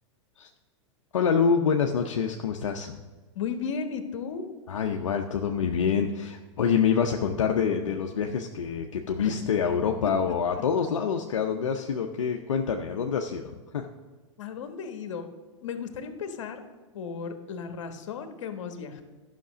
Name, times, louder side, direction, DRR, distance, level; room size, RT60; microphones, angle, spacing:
voice 1, 1.1-3.0 4.7-13.9, left 6 dB, 85° left, 3 dB, 0.7 m, -26 dB
voice 2, 3.3-4.5 7.3-7.9 9.2-9.3 10.5-10.6 14.4-15.3 15.6-16.6 16.9-19.0, left 6 dB, 70° left, 8 dB, 1.4 m, -35 dB
11.5 x 5.9 x 6.2 m, 1.3 s
hypercardioid pair, 120°, 16 cm